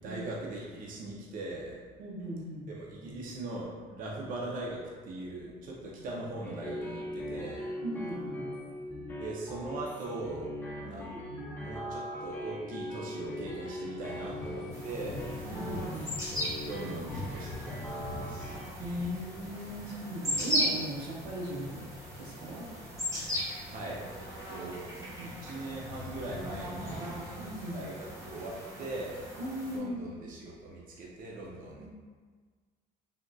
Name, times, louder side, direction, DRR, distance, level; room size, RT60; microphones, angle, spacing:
voice 1, 0.0-1.8 2.7-7.7 9.2-10.5 10.8-11.1 11.6-15.3 16.6-18.6 23.7-24.8 25.2-27.2 27.7-29.2 29.7-31.9, right 2 dB, 55° right, -3 dB, 0.5 m, -40 dB
voice 2, 2.0-2.7 4.1-4.2 7.8-8.5 11.1-11.5 15.4-16.2 18.8-21.8 22.2-22.7 25.0-25.4 27.4-27.9 29.4-30.3 31.8-31.9, equal, 90° right, -4 dB, 0.8 m, -38 dB
sound 1, 6.4-18.6, left 1 dB, 10° left, 0.5 m, -41 dB
Thunder / Rain, 14.0-29.0, left 2 dB, 85° left, 0.7 m, -46 dB
sound 2, 14.7-29.8, equal, 20° right, 0.7 m, -38 dB
3.5 x 2.6 x 2.3 m, 1.5 s
cardioid pair, 110°, 17 cm